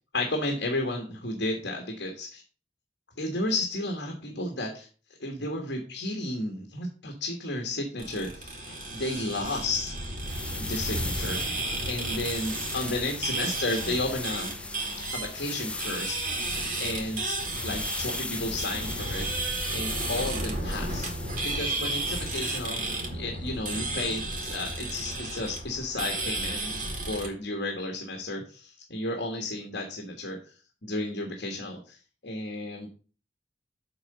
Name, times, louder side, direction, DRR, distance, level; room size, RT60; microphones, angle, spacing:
voice 1, 0.1-2.4 3.2-4.9 5.2-9.9 10.5-11.4 11.9-14.5 15.1-16.2 16.4-16.5 16.8-21.1 21.4-30.4 30.8-32.0 32.2-32.9, left 2 dB, 65° left, 2 dB, 1.5 m, -33 dB
sound 1, 8.0-27.3, right 2 dB, 45° right, 2.5 m, -33 dB
sound 2, 10.2-23.0, left 3 dB, 5° left, 0.4 m, -39 dB
7.6 x 3.9 x 6.6 m, 0.38 s
head